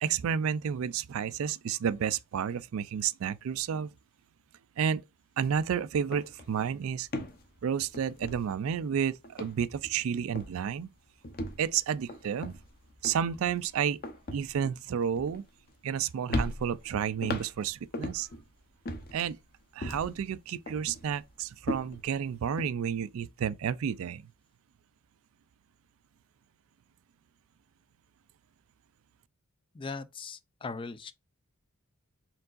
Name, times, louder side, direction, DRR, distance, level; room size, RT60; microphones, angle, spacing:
voice 1, 0.0-3.9 4.8-5.0 5.4-7.1 7.6-10.9 11.6-12.6 13.0-14.0 14.3-15.4 15.8-18.3 19.1-19.4 19.7-24.3, right 8 dB, 65° right, 0.3 m, -31 dB
sound 1, 5.4-5.6 5.9-8.9 9.2-10.1 10.4-10.7 11.2-16.0 16.3-18.4 18.9-20.3 20.7-22.7, left 1 dB, 45° left, 0.8 m, -38 dB
voice 2, 29.7-31.1, left 4 dB, 25° left, 0.4 m, -39 dB
4.5 x 3.8 x 2.5 m
head